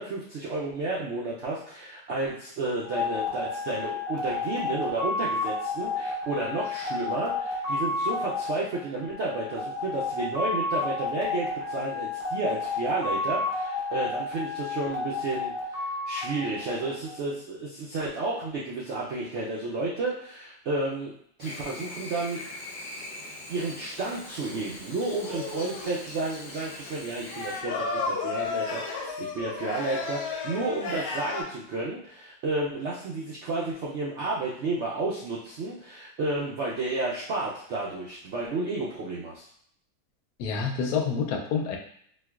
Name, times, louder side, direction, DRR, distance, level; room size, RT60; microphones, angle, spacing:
voice 1, 0.0-21.1 21.4-22.4 23.5-39.5, right 2 dB, 80° right, -6 dB, 0.6 m, -32 dB
sound 1, 2.8-17.2, left 3 dB, 25° right, 0.8 m, -31 dB
Chirp tweet / Buzz, 21.4-27.6, left 2 dB, 55° left, 0.7 m, -42 dB
sound 2, 25.2-26.0 27.2-31.4, left 4 dB, 90° left, 1.3 m, -33 dB
voice 2, 40.4-41.8, left 6 dB, 75° left, 2 dB, 1.0 m, -28 dB
4.4 x 2.2 x 2.3 m, 0.66 s
omnidirectional pair, 1.8 m